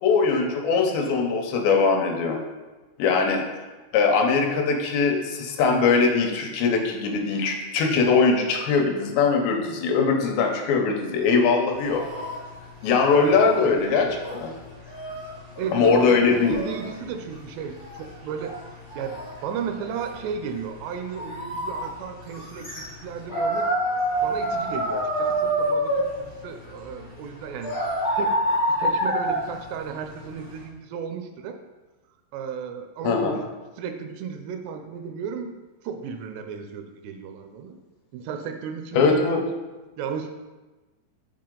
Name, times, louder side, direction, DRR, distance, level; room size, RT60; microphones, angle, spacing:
voice 1, 0.0-2.4 3.0-3.4 3.9-12.0 12.8-14.5 15.7-16.5 33.0-33.4 38.9-39.4, left 4 dB, 80° left, 2 dB, 2.9 m, -21 dB
sound 1, 11.7-30.6, equal, 60° left, 0.6 m, -29 dB
voice 2, 15.3-16.2 16.5-18.6 18.9-23.7 24.2-27.7 28.2-28.4 28.7-31.6 32.3-33.5 33.8-35.5 35.8-37.8 38.1-39.4 40.0-40.3, right 6 dB, 85° right, 6 dB, 2.6 m, -34 dB
7.5 x 4.4 x 3.7 m, 1.2 s
omnidirectional pair, 5.0 m